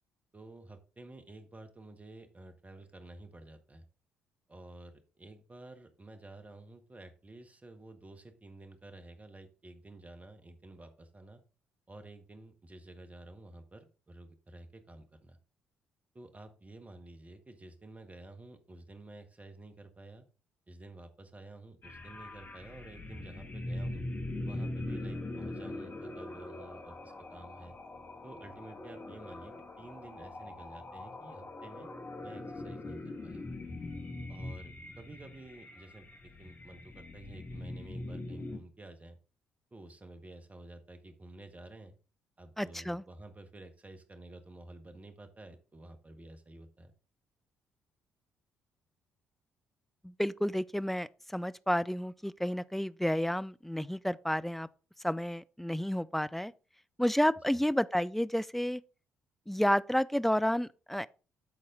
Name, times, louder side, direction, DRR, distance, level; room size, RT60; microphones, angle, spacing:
voice 1, 0.3-3.8 4.5-11.4 11.9-15.4 16.1-20.3 20.7-24.1 24.4-27.8 28.2-31.9 32.2-33.4 34.3-39.2 39.7-42.0 42.4-46.9 57.5-57.6, right 2 dB, 25° right, 1.5 m, -51 dB
sound 1, 21.8-38.6, left 2 dB, 35° left, 1.9 m, -42 dB
voice 2, 42.6-43.0 50.0-54.7 55.0-56.5 57.0-58.8 59.5-61.1, equal, 5° left, 0.4 m, -30 dB
12.0 x 4.2 x 3.8 m
figure-of-eight pair, 45°, 6 cm